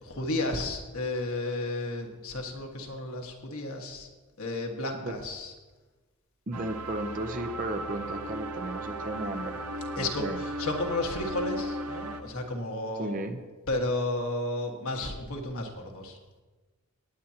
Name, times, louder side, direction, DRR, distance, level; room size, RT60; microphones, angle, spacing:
voice 1, 0.0-4.1 4.4-5.5 9.9-13.1 13.7-16.4, left 2 dB, 70° left, 1 dB, 1.7 m, -32 dB
voice 2, 6.5-9.7 10.0-10.4 13.0-13.4, right 1 dB, 35° right, 6 dB, 0.7 m, -34 dB
sound 1, 6.5-12.2, right 1 dB, 85° right, 0.8 m, -36 dB
18.0 x 10.0 x 2.9 m, 1.3 s
head